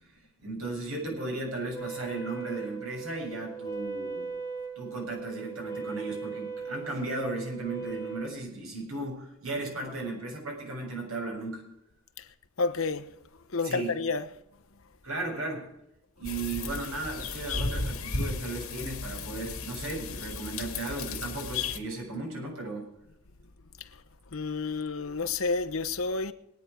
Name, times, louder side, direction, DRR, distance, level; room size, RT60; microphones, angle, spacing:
voice 1, 0.4-4.3 4.8-11.7 13.6-14.0 15.0-15.7 16.2-22.9, right 2 dB, 85° right, 7.2 m, -35 dB
Wind instrument woodwind instrument, 1.7-8.3, right 5 dB, 20° left, 2.3 m, -38 dB
voice 2, 12.6-13.1 13.5-14.3 24.3-26.3, left 4 dB, 70° left, 1.0 m, -30 dB
sound 1, 16.2-21.8, left 3 dB, 85° left, 2.1 m, -34 dB
22.5 x 9.6 x 4.9 m
head